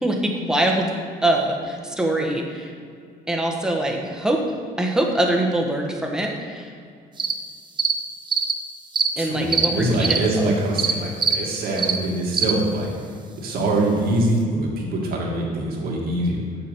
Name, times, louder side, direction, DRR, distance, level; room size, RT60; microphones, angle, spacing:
voice 1, 0.0-2.7 3.3-4.4 4.8-6.7 9.2-10.2 10.4-10.5, right 1 dB, 5° right, 0 dB, 1.2 m, -23 dB
sound 1, 7.2-7.3 7.8-7.9 8.3-8.5 8.9-9.1 9.5-9.7 10.0-10.2 10.8-10.9 11.2-11.4 11.8-12.0 12.3-12.5, right 5 dB, 25° right, 0.6 m, -21 dB
voice 2, 9.2-12.9 13.4-16.4, right 1 dB, 65° right, -2 dB, 2.0 m, -23 dB
7.1 x 5.0 x 6.8 m, 2.2 s
cardioid pair, 110°, 17 cm